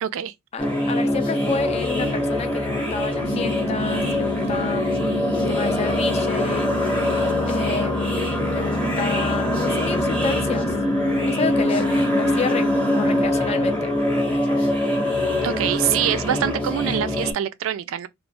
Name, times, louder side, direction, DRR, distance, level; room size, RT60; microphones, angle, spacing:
voice 1, 0.0-0.3 15.4-18.1, right 10 dB, 70° right, 0.3 m, -24 dB
voice 2, 0.5-4.9 5.3-6.7 7.5-10.7 11.3-13.9, left 4 dB, 30° left, 0.3 m, -30 dB
sound 1, 0.6-17.3, left 1 dB, 5° left, 0.7 m, -23 dB
sound 2, 3.2-13.2, equal, 75° left, 0.8 m, -30 dB
2.5 x 2.1 x 3.2 m
head